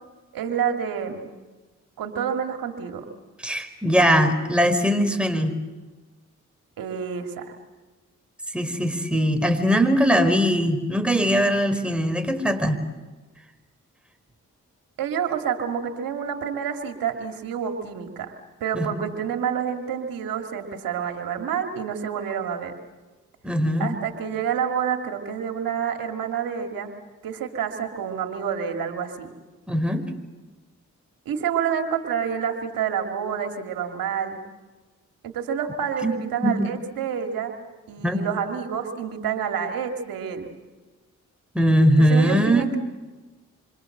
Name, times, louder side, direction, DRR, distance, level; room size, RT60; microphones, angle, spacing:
voice 1, 0.3-1.3 2.0-3.1 6.8-7.5 15.0-18.3 18.6-22.7 23.8-26.9 27.2-29.3 31.3-34.4 35.2-37.5 37.9-40.6 42.0-42.8, right 7 dB, 85° right, 5 dB, 2.3 m, -28 dB
voice 2, 3.4-5.5 8.5-12.8 18.7-19.0 23.4-24.0 29.7-30.1 36.0-36.7 38.0-38.2 41.5-42.6, equal, 5° right, 6 dB, 4.9 m, -21 dB
27.5 x 26.5 x 7.8 m, 1.2 s
supercardioid pair, 45°, 33 cm